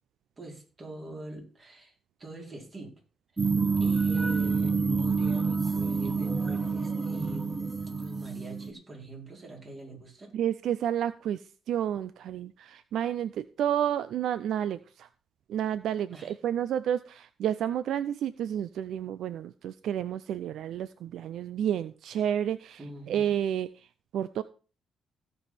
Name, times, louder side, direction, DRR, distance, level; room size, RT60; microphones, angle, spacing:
voice 1, 0.4-1.9 2.2-2.9 3.8-10.3 16.1-16.3 22.8-23.3, right 2 dB, 35° right, -1 dB, 4.8 m, -43 dB
sound 1, 3.4-8.7, right 4 dB, 20° right, 1.0 m, -28 dB
voice 2, 10.3-11.4 11.7-15.1 15.5-23.9 24.1-24.4, right 10 dB, 80° right, 14 dB, 0.4 m, -30 dB
16.5 x 5.5 x 4.3 m, 0.37 s
cardioid pair, 90°, 0 cm